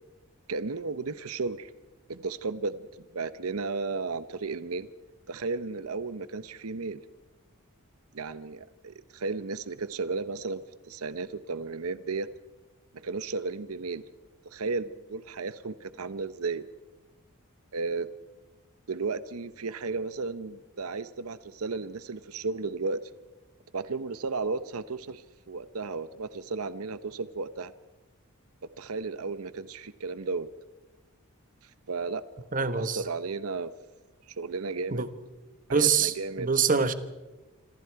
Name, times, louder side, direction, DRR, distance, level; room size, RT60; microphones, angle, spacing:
voice 1, 0.5-1.7 2.1-4.9 5.3-7.0 8.1-12.3 12.9-14.0 14.5-16.7 17.7-18.1 18.9-23.1 23.7-27.7 28.8-30.5 31.6-33.7 34.3-35.1 35.7-36.5, right 4 dB, 85° right, 0.8 m, -34 dB
voice 2, 32.5-33.0 34.9-35.1 35.7-36.9, right 5 dB, 40° right, 1.2 m, -25 dB
26.5 x 25.5 x 4.7 m
head